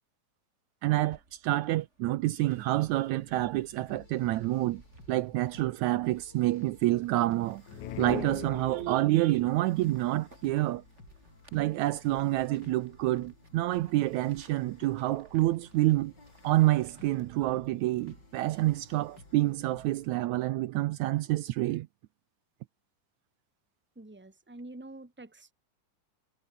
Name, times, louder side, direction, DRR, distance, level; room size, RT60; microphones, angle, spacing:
voice 1, 0.8-4.8 5.1-7.6 8.0-10.8 11.5-16.1 16.4-21.9, right 16 dB, 80° right, 1.9 m, -28 dB
sound 1, 1.0-17.5, right 2 dB, 20° right, 5.0 m, -62 dB
sound 2, 2.4-20.2, left 2 dB, 30° left, 6.4 m, -55 dB
sound 3, 7.7-9.2, left 11 dB, 70° left, 2.8 m, -39 dB
voice 2, 24.0-25.5, right 2 dB, 5° right, 2.0 m, -47 dB
omnidirectional pair, 3.5 m